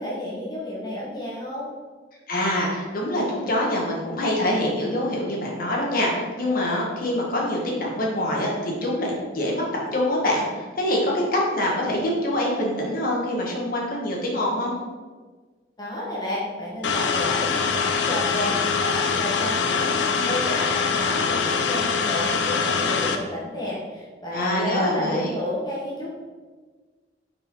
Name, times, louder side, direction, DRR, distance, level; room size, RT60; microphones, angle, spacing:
voice 1, 0.0-1.7 15.8-26.1, left 1 dB, 25° left, -5 dB, 1.4 m, -31 dB
voice 2, 2.3-9.7 9.9-14.8 24.3-25.3, left 1 dB, 55° left, -2 dB, 1.6 m, -25 dB
sound 1, 16.8-23.2, left 5 dB, 85° left, 0.6 m, -23 dB
5.8 x 5.7 x 3.8 m, 1.4 s
head